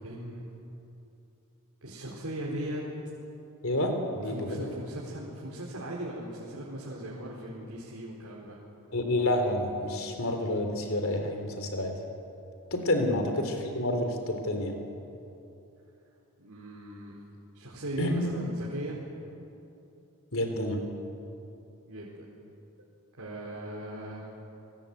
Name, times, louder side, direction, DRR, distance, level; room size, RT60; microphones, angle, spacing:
voice 1, 0.0-0.5 1.8-2.8 4.1-8.6 16.4-17.2 17.5-19.0 21.9-22.3 23.2-24.3, right 1 dB, 80° right, -5 dB, 4.4 m, -38 dB
voice 2, 3.6-4.6 8.9-11.9 12.7-14.7 18.0-18.3 20.3-20.8, left 1 dB, 65° left, 5 dB, 3.7 m, -29 dB
29.5 x 20.5 x 8.6 m, 2.8 s
head